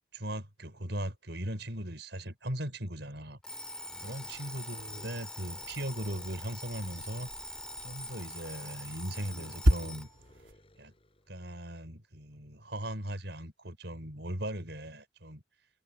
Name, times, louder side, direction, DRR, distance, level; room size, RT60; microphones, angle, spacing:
voice 1, 0.1-3.4 4.0-7.3 7.8-10.1 10.8-10.9 11.3-15.4, right 1 dB, 60° right, 6.1 m, -38 dB
Alarm, 3.4-10.1, left 1 dB, 5° left, 2.2 m, -44 dB
sound 1, 3.9-6.5 9.1-11.4, equal, 30° left, 7.4 m, -58 dB
sound 2, 5.5-10.5, equal, 80° right, 3.5 m, -34 dB
head